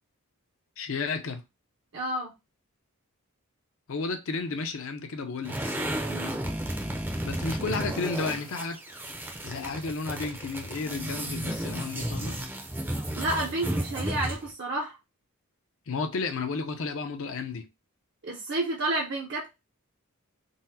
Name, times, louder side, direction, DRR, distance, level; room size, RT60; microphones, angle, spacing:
voice 1, 0.8-1.4 3.9-5.6 7.2-8.8 9.4-12.4 15.9-17.7, left 4 dB, 60° left, 0.5 m, -32 dB
voice 2, 1.9-2.3 6.1-6.4 13.2-15.0 18.2-19.5, right 2 dB, 55° right, 0.6 m, -30 dB
sound 1, 5.4-14.5, right 1 dB, 10° right, 0.5 m, -33 dB
3.9 x 2.0 x 2.7 m
head